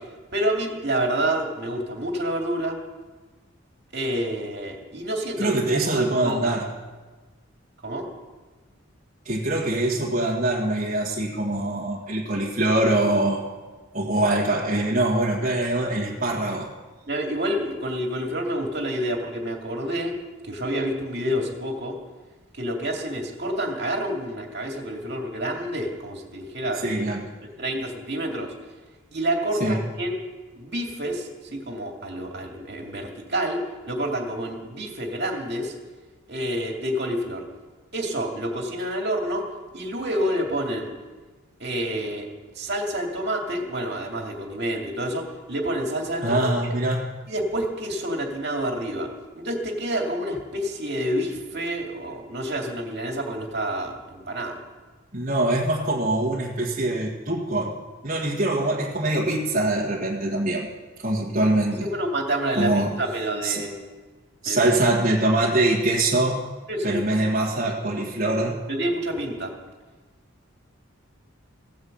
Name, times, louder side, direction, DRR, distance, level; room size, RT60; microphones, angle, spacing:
voice 1, 0.3-2.8 3.9-6.5 7.8-8.1 14.7-14.9 17.1-20.1 20.4-21.9 22.5-27.0 27.6-28.5 29.1-30.2 30.5-33.6 33.9-35.7 36.3-37.4 37.9-39.4 39.7-40.9 41.6-42.3 42.6-46.5 47.3-49.1 49.4-54.6 61.8-63.8 64.5-64.7 66.7-67.0 68.7-69.5, right 1 dB, 50° right, 1 dB, 2.4 m, -28 dB
voice 2, 5.4-6.7 9.3-13.4 13.9-16.7 26.8-27.2 29.6-29.8 46.2-47.1 55.1-57.7 58.0-60.7 61.0-61.9 62.6-63.0 63.4-63.6 64.4-66.5 66.8-68.6, right 1 dB, 35° right, -5 dB, 1.7 m, -23 dB
16.0 x 9.6 x 7.9 m, 1.3 s
head